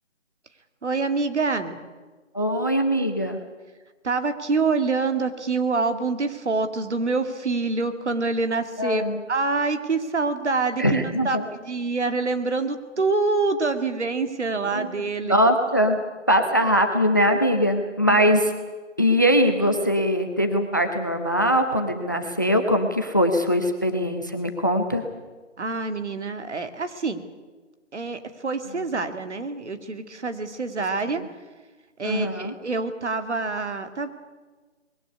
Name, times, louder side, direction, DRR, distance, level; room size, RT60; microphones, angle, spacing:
voice 1, 0.8-1.8 4.0-11.4 11.6-15.3 18.0-18.3 25.6-27.2 27.9-31.2 32.0-34.1, right 3 dB, 65° right, 8 dB, 2.3 m, -26 dB
voice 2, 2.3-3.4 8.8-9.2 10.8-11.4 14.7-14.9 15.2-16.0 16.3-18.5 19.0-25.0 31.1-31.2 32.0-32.5, equal, 15° left, 6 dB, 0.7 m, -21 dB
20.5 x 16.5 x 9.7 m, 1.3 s
figure-of-eight pair, 165°, 37 cm